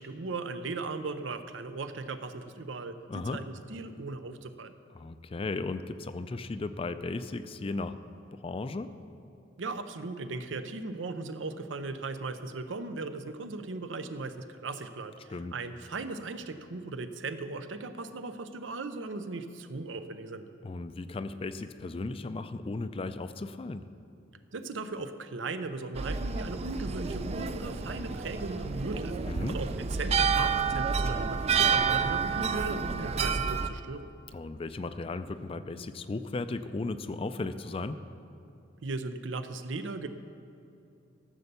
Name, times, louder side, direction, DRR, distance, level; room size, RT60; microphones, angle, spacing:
voice 1, 0.0-4.7 9.6-20.5 24.5-34.1 38.8-40.1, right 3 dB, 80° right, 10 dB, 0.7 m, -37 dB
voice 2, 3.1-3.4 4.9-8.0 8.3-8.9 15.3-15.6 20.6-23.8 29.2-29.6 34.3-38.0, left 3 dB, 30° left, 11 dB, 0.4 m, -36 dB
sound 1, 25.9-33.7, right 5 dB, 35° right, 0.4 m, -29 dB
14.0 x 6.7 x 6.8 m, 2.7 s
head